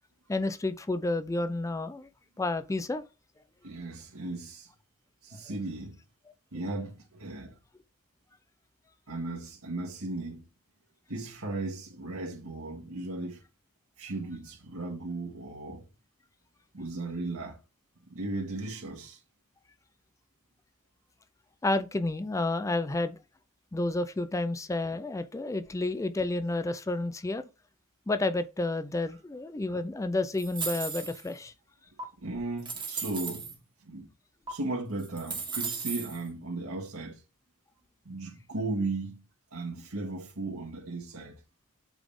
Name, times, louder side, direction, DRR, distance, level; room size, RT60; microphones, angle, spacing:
voice 1, 0.3-2.1 2.4-3.0 21.6-23.2 23.7-27.4 28.1-31.5, left 2 dB, 15° left, 0.4 m, -30 dB
voice 2, 3.6-4.7 5.2-6.0 6.5-7.6 9.1-10.4 11.1-13.4 14.0-15.9 16.7-17.6 18.1-19.2 32.2-34.1 34.5-37.2 38.1-39.2 39.5-41.4, right 2 dB, 85° right, 2.0 m, -36 dB
sound 1, 30.4-31.4 32.0-32.1 32.6-33.5 34.5-34.6 35.0-36.2, right 5 dB, 20° right, 1.6 m, -36 dB
8.0 x 4.0 x 3.6 m
head